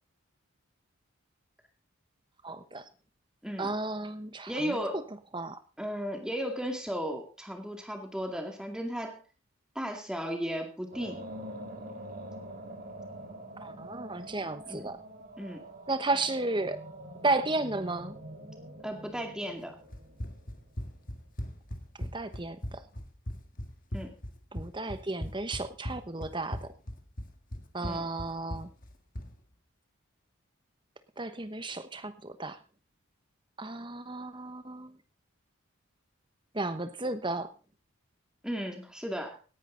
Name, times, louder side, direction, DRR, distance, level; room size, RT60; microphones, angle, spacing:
voice 1, 2.4-2.9 3.6-5.0 5.3-5.6 13.6-15.0 15.9-16.8 17.2-18.2 22.0-22.8 24.5-26.7 27.7-28.7 31.2-32.6 33.6-35.0 36.5-37.5, right 2 dB, 20° right, 11 dB, 1.0 m, -33 dB
voice 2, 4.5-5.0 5.8-9.2 9.8-11.2 14.7-14.9 15.4-15.6 18.8-19.8 23.9-24.1 27.8-28.1 38.4-39.4, equal, 5° right, 4 dB, 2.2 m, -35 dB
sound 1, 10.9-21.1, right 1 dB, 40° right, 2.1 m, -45 dB
Run, 19.9-29.4, equal, 40° left, 1.8 m, -39 dB
18.0 x 10.0 x 3.9 m, 0.34 s
head